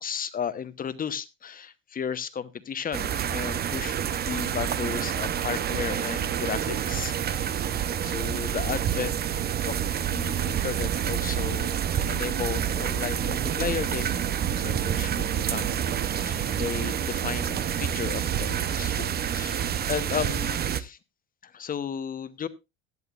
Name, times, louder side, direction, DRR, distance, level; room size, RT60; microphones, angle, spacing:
voice 1, 0.0-7.7 8.0-9.2 9.7-21.0 21.4-22.5, left 7 dB, 25° left, 14 dB, 1.0 m, -34 dB
sound 1, 2.9-20.8, right 9 dB, 30° right, 0.7 m, -28 dB
16.5 x 10.5 x 2.5 m, 0.24 s
supercardioid pair, 115°, 31 cm